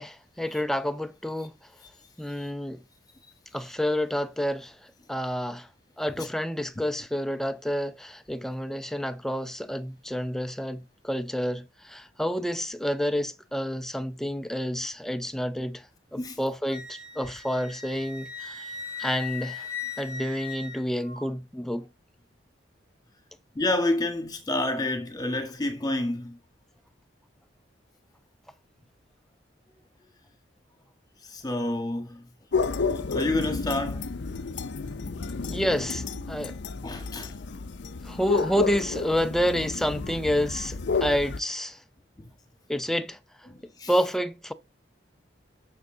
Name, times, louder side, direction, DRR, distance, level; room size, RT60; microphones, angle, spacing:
voice 1, 0.0-1.5 2.2-2.8 3.5-4.8 5.1-5.7 6.0-18.7 19.0-19.7 20.0-21.9 35.5-36.6 38.0-41.8 42.7-43.2 43.9-44.5, equal, ahead, 0.5 m, -29 dB
Wind instrument woodwind instrument, 16.7-21.3, left 5 dB, 75° right, 4.1 m, -38 dB
voice 2, 23.5-26.4 31.3-32.2 32.8-34.0 36.8-37.3 42.2-42.3 43.5-43.9, left 2 dB, 20° left, 1.5 m, -29 dB
sound 1, 32.5-41.4, left 4 dB, 65° left, 0.5 m, -31 dB
7.1 x 6.6 x 3.9 m
head